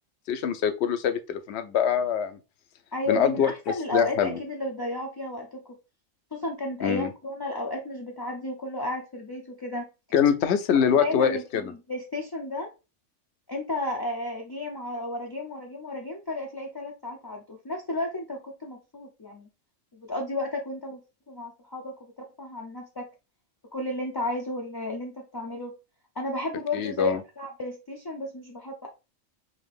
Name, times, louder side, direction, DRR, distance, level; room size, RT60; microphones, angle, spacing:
voice 1, 0.3-2.4 3.1-3.5 3.9-4.4 6.8-7.1 10.1-11.7 26.7-27.2, left 8 dB, 65° left, 0.8 m, -24 dB
voice 2, 2.9-5.6 6.3-9.9 10.9-12.7 13.5-19.5 19.9-21.0 21.3-22.1 22.4-23.1 23.7-25.8 26.2-28.9, left 1 dB, 35° left, 0.3 m, -33 dB
4.1 x 2.8 x 3.3 m
omnidirectional pair, 1.3 m